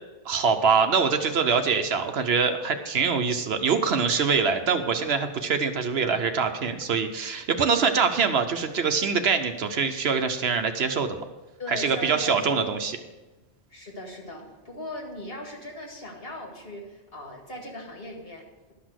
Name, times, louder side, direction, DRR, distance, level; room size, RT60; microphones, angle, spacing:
voice 1, 0.3-11.2 11.7-13.0, right 5 dB, 65° right, 7 dB, 0.9 m, -24 dB
voice 2, 11.6-13.1 13.7-18.7, left 1 dB, 55° left, 0 dB, 2.1 m, -39 dB
11.5 x 6.0 x 6.4 m, 1.1 s
omnidirectional pair, 1.2 m